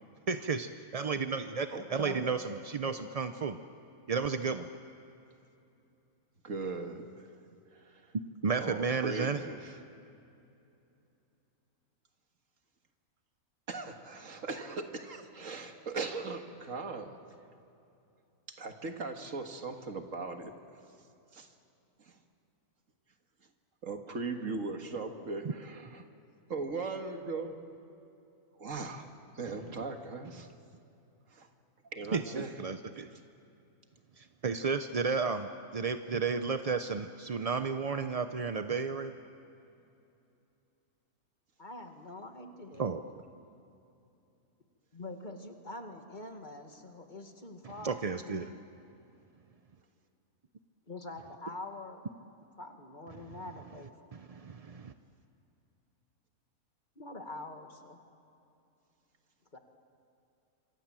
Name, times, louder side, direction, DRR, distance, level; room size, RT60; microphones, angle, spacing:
voice 1, 0.3-3.6 4.1-4.7 8.4-9.4 32.1-33.1 34.2-39.2 42.8-43.0 47.8-48.5 54.1-54.9, right 5 dB, 45° right, 9 dB, 0.5 m, -33 dB
voice 2, 1.7-2.3 6.4-7.3 7.7-8.0 8.6-9.8 13.7-17.2 18.6-20.5 21.3-21.5 22.0-22.1 23.8-26.0 26.5-27.6 28.6-29.1 29.4-30.5 31.3-31.5 31.9-32.6, right 3 dB, 60° right, 5 dB, 2.0 m, -39 dB
voice 3, 41.6-42.9 44.9-48.6 50.9-52.1 52.6-53.9 57.0-58.0 59.5-59.6, left 2 dB, 30° left, 5 dB, 2.0 m, -45 dB
27.0 x 26.0 x 7.5 m, 2.7 s
omnidirectional pair, 1.5 m